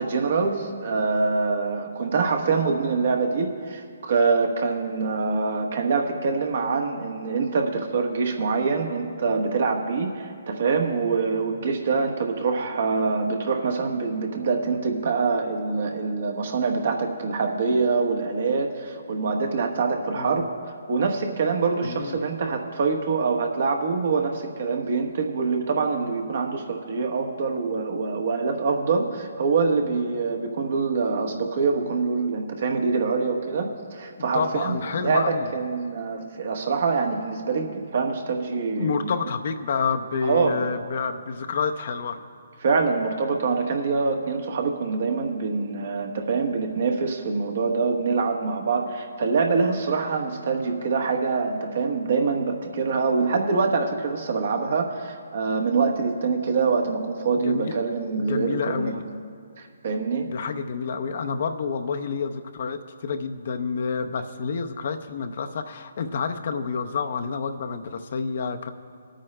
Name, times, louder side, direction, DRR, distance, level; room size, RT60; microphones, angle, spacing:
voice 1, 0.0-20.5 20.9-39.1 40.2-40.6 42.6-59.0 59.6-60.3, right 4 dB, 60° right, 3 dB, 1.1 m, -25 dB
voice 2, 20.1-20.5 21.8-22.2 34.3-35.5 38.8-42.2 57.3-57.8 58.3-59.0 60.3-68.7, left 5 dB, 55° left, 8 dB, 0.6 m, -29 dB
25.5 x 8.9 x 2.2 m, 2.2 s
hypercardioid pair, 145°, 0 cm